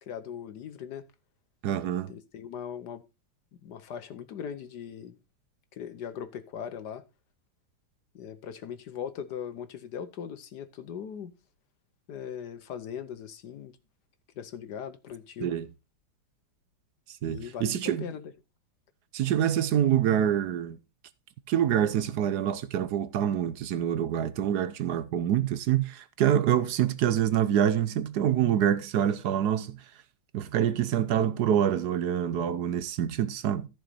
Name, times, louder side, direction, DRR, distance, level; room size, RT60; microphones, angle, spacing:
voice 1, 0.0-1.1 2.1-3.0 3.5-5.2 5.7-7.0 8.1-11.3 12.1-13.8 14.3-15.5 17.2-18.3, left 8 dB, 65° left, 1.2 m, -39 dB
voice 2, 1.6-2.2 15.4-15.6 17.2-18.0 19.1-20.8 21.5-29.8 30.3-33.7, right 10 dB, 65° right, 1.1 m, -26 dB
14.0 x 6.5 x 4.1 m
omnidirectional pair, 2.2 m